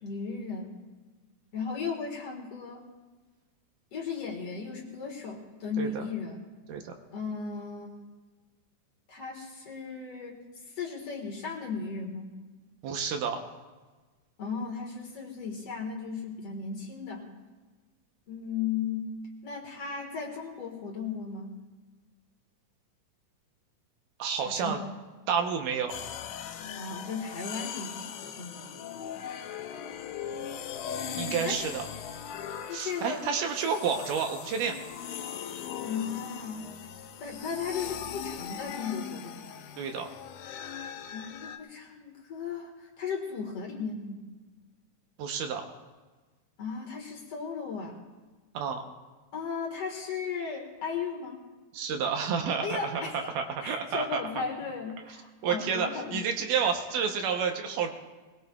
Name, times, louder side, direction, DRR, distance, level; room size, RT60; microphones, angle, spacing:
voice 1, 0.0-0.8 1.5-2.8 3.9-6.5 7.1-7.9 9.1-10.4 10.7-12.3 14.4-17.3 18.3-21.5 24.5-24.7 26.7-28.7 31.0-31.6 32.7-33.3 35.8-36.7 37.2-39.5 41.1-44.2 46.6-48.0 49.3-51.4 52.6-53.3 53.6-56.3, left 5 dB, 50° left, -1 dB, 2.3 m, -36 dB
voice 2, 12.8-13.5 24.2-24.8 25.3-26.0 31.2-31.9 32.7-34.8 39.8-40.1 45.2-45.6 48.5-48.8 51.7-54.2 55.4-57.9, right 6 dB, 75° right, 4 dB, 2.4 m, -30 dB
sound 1, 25.9-41.6, left 8 dB, 75° left, 2.2 m, -40 dB
21.0 x 20.5 x 2.3 m, 1.3 s
omnidirectional pair, 3.9 m